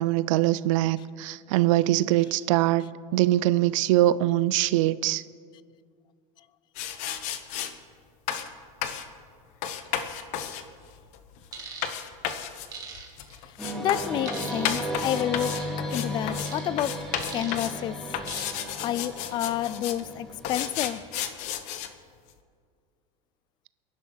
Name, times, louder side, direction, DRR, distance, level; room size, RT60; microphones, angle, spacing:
voice 1, 0.0-5.2, right 15 dB, 85° right, 0.4 m, -23 dB
sound 1, 6.8-7.7 8.3-8.5 8.8-9.1 9.6-16.5 16.8-17.8 18.1-20.0 20.4-21.9, left 9 dB, 45° left, 1.0 m, -33 dB
sound 2, 11.5-11.9 12.7-13.4 14.3-14.8 15.4-15.7 16.4-16.6 17.2-17.7 18.3-18.7 19.1-19.3, right 5 dB, 25° right, 2.1 m, -41 dB
sound 3, 13.6-20.9, equal, 5° left, 1.9 m, -35 dB
voice 2, 13.8-18.2 18.8-21.0, left 12 dB, 30° left, 0.4 m, -30 dB
28.0 x 11.0 x 4.0 m
cardioid pair, 165°, 16 cm